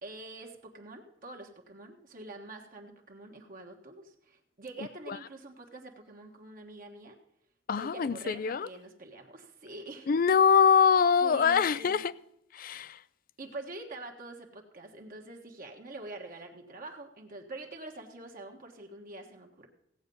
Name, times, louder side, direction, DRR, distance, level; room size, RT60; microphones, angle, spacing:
voice 1, 0.0-7.2 7.8-10.1 11.2-12.0 13.4-19.7, right 2 dB, 45° right, 1.4 m, -45 dB
voice 2, 7.7-8.7 10.1-12.1 12.5-13.0, left 6 dB, 45° left, 0.4 m, -24 dB
16.5 x 8.1 x 5.4 m
head